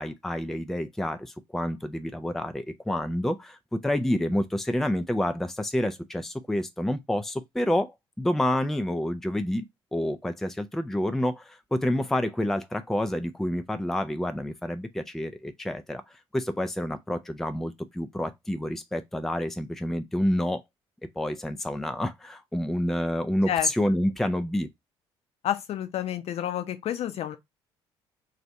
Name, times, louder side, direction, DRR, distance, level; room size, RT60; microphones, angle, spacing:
voice 1, 0.0-9.7 9.9-16.0 16.3-20.6 21.2-24.7, left 1 dB, ahead, 0.4 m, -28 dB
voice 2, 25.4-27.4, left 11 dB, 45° left, 0.6 m, -29 dB
3.2 x 2.6 x 4.0 m
figure-of-eight pair, 50°, 14 cm